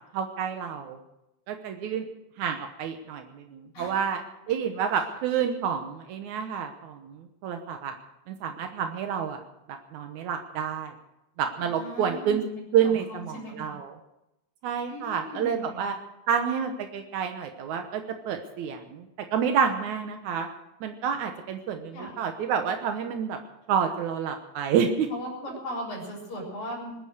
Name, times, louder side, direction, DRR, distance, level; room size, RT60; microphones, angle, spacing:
voice 1, 0.1-1.0 1.5-2.1 2.4-4.2 4.5-8.0 8.3-9.4 9.7-10.9 11.4-12.4 12.7-14.0 14.6-16.0 16.3-20.5 20.8-23.4 23.7-25.1 25.5-25.6, right 7 dB, 80° right, 5 dB, 2.5 m, -29 dB
voice 2, 11.6-13.7 14.9-15.9 21.9-22.2 25.1-27.1, equal, 75° left, -4 dB, 5.6 m, -38 dB
20.5 x 11.0 x 6.6 m, 0.88 s
omnidirectional pair, 3.3 m